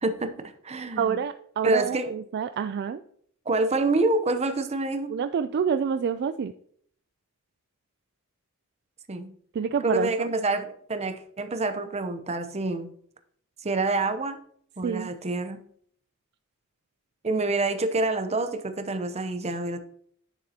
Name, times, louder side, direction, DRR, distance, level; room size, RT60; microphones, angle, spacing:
voice 1, 0.0-1.2 1.6-2.1 3.5-5.1 9.1-9.3 9.8-12.9 13.6-14.4 14.8-15.6 17.2-19.8, right 2 dB, 30° right, 8 dB, 0.7 m, -27 dB
voice 2, 1.0-3.0 5.1-6.5 9.5-10.3 14.8-15.1, right 7 dB, 50° right, 10 dB, 0.3 m, -28 dB
9.9 x 6.7 x 2.9 m, 0.62 s
head